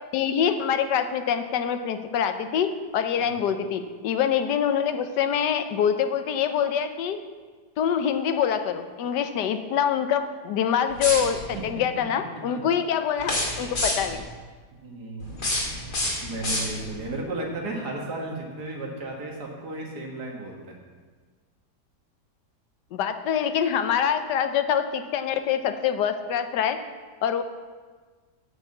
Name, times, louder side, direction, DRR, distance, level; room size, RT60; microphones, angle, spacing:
voice 1, 0.1-7.2 7.8-14.2 22.9-26.8 27.2-27.4, left 8 dB, 90° left, 9 dB, 1.3 m, -25 dB
sound 1, 10.9-11.6 13.2-14.2 15.2-17.1, left 1 dB, 70° left, 3.0 m, -29 dB
voice 2, 11.5-12.0 14.7-15.4 16.2-20.8, right 2 dB, 70° right, 0 dB, 2.2 m, -34 dB
8.8 x 6.1 x 7.2 m, 1.5 s
omnidirectional pair, 1.8 m